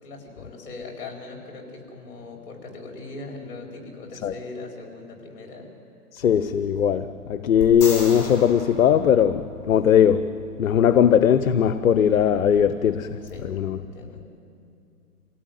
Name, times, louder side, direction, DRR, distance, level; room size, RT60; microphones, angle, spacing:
voice 1, 0.0-5.7 13.2-13.5 13.8-14.2, left 3 dB, 35° left, 4.9 m, -40 dB
voice 2, 6.1-10.3 10.6-13.2 13.4-13.8, left 8 dB, 60° left, 0.9 m, -19 dB
sound 1, 7.6-9.8 13.3-13.4, left 3 dB, 15° left, 6.2 m, -35 dB
27.0 x 17.0 x 9.3 m
hypercardioid pair, 160°, 47 cm